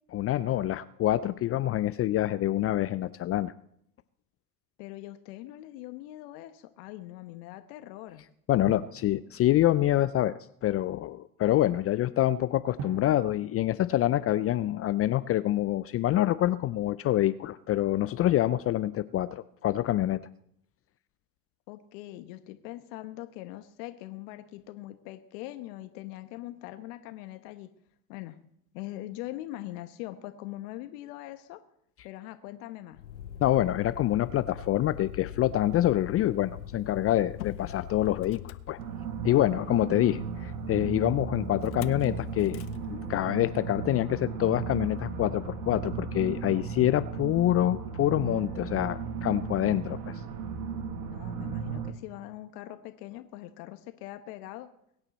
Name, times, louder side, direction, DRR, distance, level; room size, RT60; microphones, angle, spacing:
voice 1, 0.1-3.5 8.5-20.2 33.4-38.8 39.2-42.6 42.9-50.2, left 13 dB, 30° left, 14 dB, 0.4 m, -26 dB
voice 2, 4.8-8.2 21.7-27.7 28.1-28.4 28.7-31.6 32.0-33.0 51.0-54.7, left 15 dB, 65° left, 8 dB, 1.3 m, -42 dB
Drum, 8.7-10.2 12.8-15.0, right 5 dB, 50° right, 1.7 m, -45 dB
Motor vehicle (road), 32.9-39.4 41.6-42.1 42.4-42.8, left 9 dB, 85° left, 0.8 m, -42 dB
sound 1, 38.8-51.9, right 5 dB, 75° right, 2.2 m, -35 dB
23.0 x 8.9 x 4.2 m, 0.71 s
hypercardioid pair, 90°, 49 cm